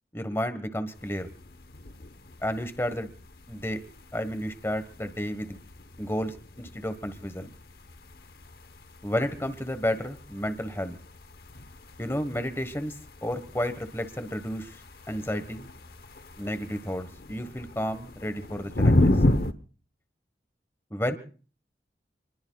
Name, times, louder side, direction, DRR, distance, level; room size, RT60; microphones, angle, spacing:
voice 1, 0.1-1.3 2.4-3.1 3.5-3.8 4.1-5.6 6.0-7.5 9.0-11.0 12.0-12.9 13.2-14.8 15.1-15.7 16.4-19.1 20.9-21.2, equal, 15° left, 9 dB, 1.4 m, -31 dB
sound 1, 0.9-19.5, left 1 dB, 60° left, 1.0 m, -33 dB
29.0 x 21.0 x 2.4 m, 0.40 s
head